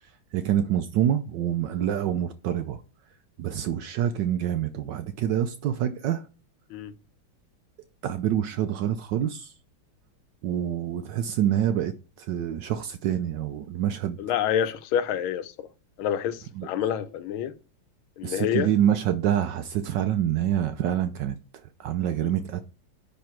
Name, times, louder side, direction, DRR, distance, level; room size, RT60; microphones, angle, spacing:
voice 1, 0.3-2.8 3.4-6.3 8.0-9.5 10.4-11.9 12.2-14.2 16.5-16.7 18.2-22.6, right 10 dB, 75° right, 1.1 m, -26 dB
voice 2, 14.2-15.7 16.0-17.5 18.2-18.7 22.2-22.3, left 9 dB, 80° left, 1.5 m, -27 dB
10.0 x 3.4 x 4.4 m
omnidirectional pair, 2.3 m